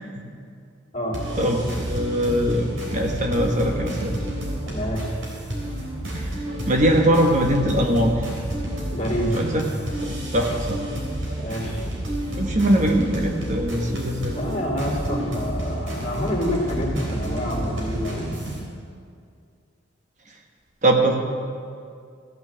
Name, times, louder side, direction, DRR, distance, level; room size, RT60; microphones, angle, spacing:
sound 1, 1.1-18.6, right 1 dB, 85° right, 3.5 m, -30 dB
voice 1, 1.4-4.2 6.7-8.3 9.3-9.6 10.0-10.8 12.4-14.4 20.8-21.1, right 1 dB, 40° right, 2 dB, 1.1 m, -21 dB
voice 2, 4.6-5.1 8.9-9.3 11.4-11.8 14.3-18.3, equal, 40° left, -2 dB, 2.4 m, -27 dB
14.5 x 6.2 x 7.8 m, 2.3 s
head